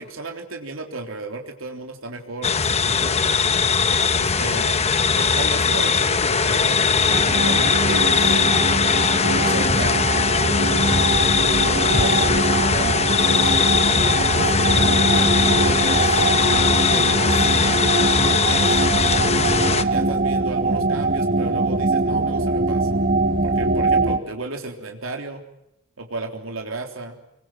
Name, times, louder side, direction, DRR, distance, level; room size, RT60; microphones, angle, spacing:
voice 1, 0.0-3.2 4.1-4.7 5.1-6.8 7.2-8.4 9.2-10.0 11.6-13.6 14.3-16.2 16.5-18.0 18.2-18.8 19.6-23.0 23.4-25.4 26.0-27.2, right 2 dB, 90° right, 3 dB, 3.6 m, -34 dB
sound 1, 2.4-19.8, left 5 dB, 30° left, 1.2 m, -20 dB
sound 2, 7.1-24.2, right 2 dB, 45° right, 1.4 m, -22 dB
25.0 x 24.0 x 7.7 m, 0.80 s
head